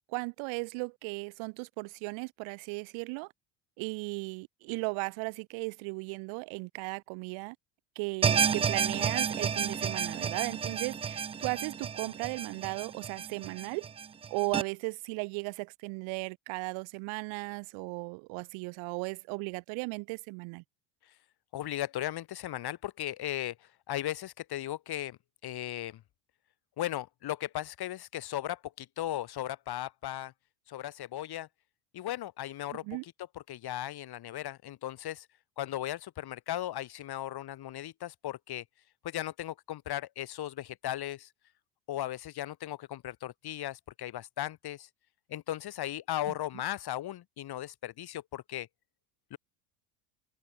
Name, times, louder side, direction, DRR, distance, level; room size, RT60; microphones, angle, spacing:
voice 1, 0.1-3.3 3.8-7.6 8.0-13.9 14.3-20.6 32.8-33.0 46.3-46.4, right 30 dB, 70° right, 3.7 m, -36 dB
sound 1, 8.2-14.6, right 7 dB, 15° right, 0.3 m, -31 dB
voice 2, 21.5-23.6 23.9-26.0 26.8-30.3 30.7-31.5 31.9-33.1 33.5-35.3 35.6-38.6 39.0-41.3 41.9-44.9 45.3-48.7 49.3-49.4, left 13 dB, 50° left, 5.3 m, -37 dB
open air
supercardioid pair, 95°, 49 cm